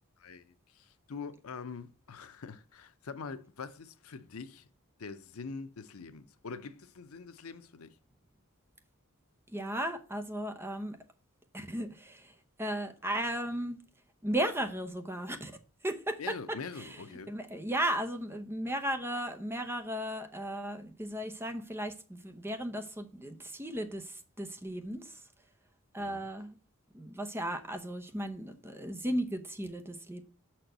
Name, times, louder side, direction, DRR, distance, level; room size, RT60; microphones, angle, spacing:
voice 1, 0.2-4.7 5.0-7.9 16.2-17.4 26.0-26.3, left 4 dB, 90° left, 0.7 m, -44 dB
voice 2, 9.5-11.0 11.5-12.3 12.6-13.8 14.2-15.5 15.8-16.2 16.8-25.2 25.9-26.6 26.9-30.2, right 1 dB, 10° right, 0.8 m, -35 dB
6.1 x 4.4 x 6.5 m
head